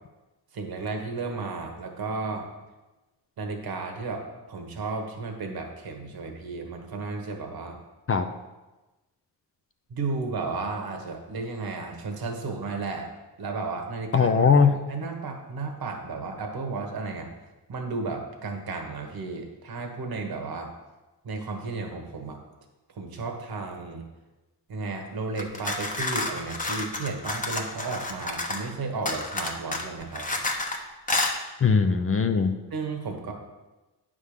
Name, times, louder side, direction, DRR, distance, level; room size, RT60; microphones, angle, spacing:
voice 1, 0.5-2.5 3.4-7.8 9.9-13.1 13.4-14.3 14.6-17.3 17.7-20.7 21.2-22.4 22.9-24.0 24.7-30.4 32.7-33.3, right 3 dB, 65° right, 3 dB, 1.3 m, -33 dB
voice 2, 14.1-14.7 31.6-32.5, left 5 dB, 35° left, 7 dB, 0.5 m, -20 dB
sound 1, 25.4-28.7 29.1-30.8 31.1-31.4, left 2 dB, 20° left, 0.9 m, -30 dB
9.5 x 3.7 x 6.5 m, 1.1 s
wide cardioid pair, 125°, 40 cm